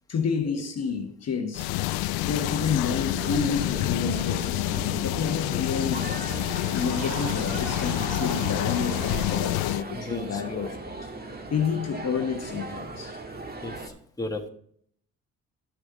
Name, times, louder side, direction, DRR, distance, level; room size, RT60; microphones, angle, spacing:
voice 1, 0.1-1.7 2.2-6.4 6.7-10.8 11.0-11.1 11.5-13.2, left 6 dB, 45° left, 1.3 m, -29 dB
sound 1, 1.5-9.8, left 17 dB, 80° left, 0.5 m, -28 dB
sound 2, 2.3-13.9, right 2 dB, 25° right, 1.7 m, -38 dB
sound 3, 5.0-9.5, right 4 dB, 60° right, 2.2 m, -39 dB
voice 2, 9.9-10.7 13.6-14.5, left 2 dB, 10° left, 1.5 m, -35 dB
11.0 x 6.5 x 3.7 m
supercardioid pair, 70°, 36 cm